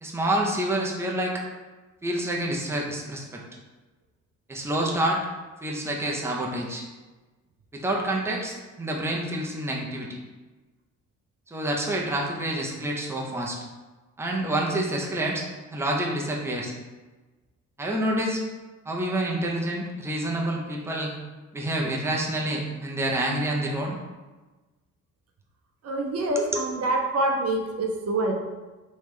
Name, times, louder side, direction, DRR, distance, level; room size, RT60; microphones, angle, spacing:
voice 1, 0.0-1.4 2.0-3.4 4.5-5.2 5.6-6.8 7.7-10.2 11.5-13.6 14.2-16.7 17.8-18.4 18.9-21.1 21.5-24.0 26.4-26.6, right 1 dB, 10° right, -1 dB, 0.7 m, -28 dB
voice 2, 25.8-28.3, right 2 dB, 55° right, 2 dB, 0.6 m, -26 dB
3.5 x 3.1 x 3.2 m, 1.2 s
cardioid pair, 90°, 30 cm